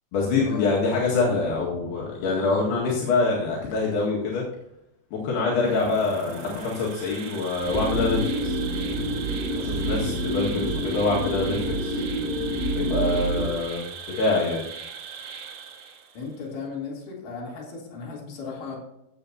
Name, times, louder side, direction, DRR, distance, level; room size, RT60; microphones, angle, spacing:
voice 1, 0.1-4.4 5.1-8.6 9.6-12.0 12.7-13.8 14.2-14.6, left 3 dB, 75° left, -5 dB, 3.9 m, -25 dB
Insect, 5.6-16.4, right 7 dB, 65° right, 2.2 m, -39 dB
sound 1, 7.6-13.5, right 1 dB, 15° left, 3.7 m, -27 dB
voice 2, 16.1-18.8, left 5 dB, 50° left, -4 dB, 4.6 m, -36 dB
16.0 x 8.3 x 2.8 m, 0.83 s
omnidirectional pair, 4.7 m